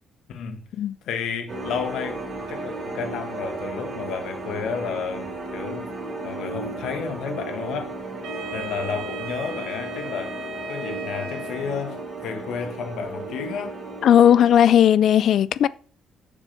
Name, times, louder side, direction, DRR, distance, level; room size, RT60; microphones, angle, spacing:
voice 1, 0.3-0.6 1.0-5.9 6.2-7.9 8.5-10.4 10.7-13.8, left 6 dB, 65° left, 1.4 m, -31 dB
sound 1, 1.5-14.5, right 2 dB, 25° right, 3.8 m, -34 dB
Wind instrument woodwind instrument, 8.2-12.1, right 1 dB, 65° right, 2.1 m, -36 dB
voice 2, 14.0-15.7, left 10 dB, 50° left, 0.4 m, -16 dB
7.2 x 7.0 x 5.6 m
cardioid pair, 175°, 0 cm